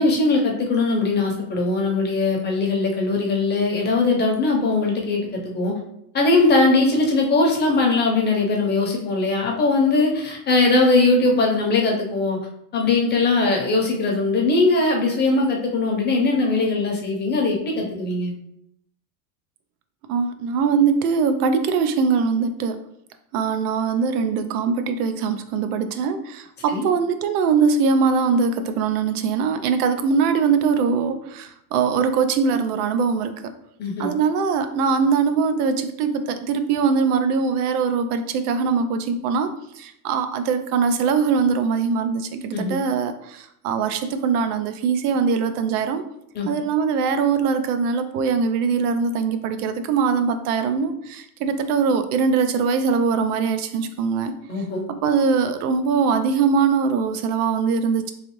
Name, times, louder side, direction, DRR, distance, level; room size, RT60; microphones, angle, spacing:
voice 1, 0.0-5.7 6.1-12.4 12.7-18.3 26.7-26.9 33.8-34.1 42.5-42.8 46.3-46.5 54.5-54.8, left 3 dB, 25° left, 0 dB, 0.6 m, -20 dB
voice 2, 20.1-22.8 23.3-33.5 34.0-46.0 46.5-54.3 55.0-58.1, right 5 dB, 80° right, 9 dB, 0.6 m, -22 dB
3.2 x 2.6 x 3.0 m, 0.76 s
supercardioid pair, 125°, 45 cm